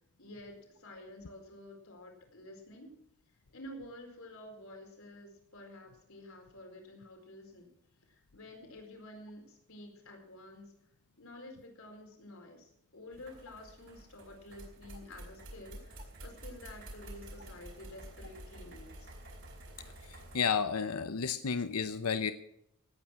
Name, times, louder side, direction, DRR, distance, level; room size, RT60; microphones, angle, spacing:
voice 1, 0.2-2.9 3.5-7.7 8.1-10.7 11.2-19.1, left 1 dB, 65° left, 2 dB, 4.4 m, -50 dB
sound 1, 13.1-20.4, right 1 dB, 55° right, 4.7 m, -49 dB
voice 2, 20.0-22.3, left 6 dB, 85° left, 11 dB, 0.8 m, -32 dB
18.0 x 8.8 x 6.2 m, 0.74 s
head